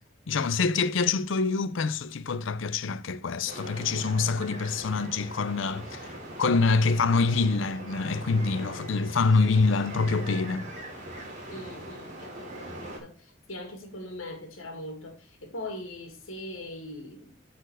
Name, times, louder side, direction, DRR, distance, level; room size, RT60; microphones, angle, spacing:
voice 1, 0.3-10.6, left 4 dB, 65° left, 0.5 m, -26 dB
sound 1, 3.5-13.0, right 1 dB, 40° right, 2.7 m, -41 dB
voice 2, 11.5-17.3, left 1 dB, 85° left, 2.3 m, -41 dB
9.0 x 4.4 x 6.3 m
head